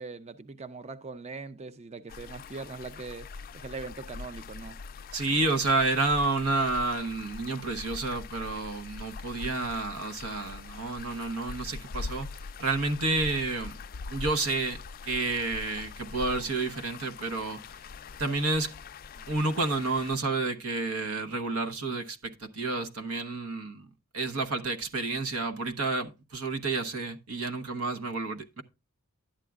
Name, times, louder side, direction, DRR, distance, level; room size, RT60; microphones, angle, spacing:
voice 1, 0.0-3.3 3.5-4.8, right 4 dB, 30° right, 0.5 m, -41 dB
sound 1, 2.1-20.2, left 4 dB, 40° left, 0.4 m, -43 dB
voice 2, 5.1-12.3 12.6-13.8 14.1-17.6 18.2-18.7 19.2-23.9 24.1-28.6, right 3 dB, 85° right, 1.0 m, -30 dB
11.5 x 8.9 x 2.4 m
head